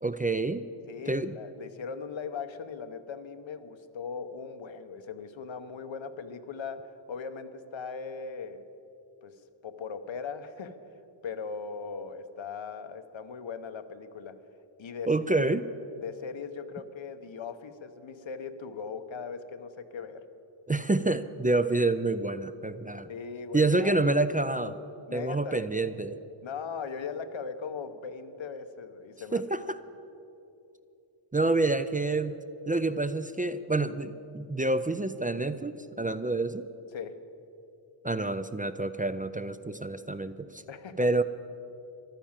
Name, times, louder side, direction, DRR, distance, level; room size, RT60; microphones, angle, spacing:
voice 1, 0.0-0.6 1.1-1.4 15.1-15.6 20.7-23.1 23.5-24.8 25.1-26.2 29.3-29.8 31.3-32.4 32.7-36.6 38.0-40.6 41.0-41.2, right 2 dB, 20° right, 12 dB, 0.3 m, -28 dB
voice 2, 0.9-8.6 9.2-10.8 11.2-14.4 14.8-15.1 16.0-20.2 23.1-24.0 25.1-25.7 26.4-29.4 36.9-37.2 40.7-41.1, left 5 dB, 65° left, 9 dB, 1.0 m, -39 dB
14.5 x 12.0 x 7.3 m, 2.8 s
wide cardioid pair, 135°, 49 cm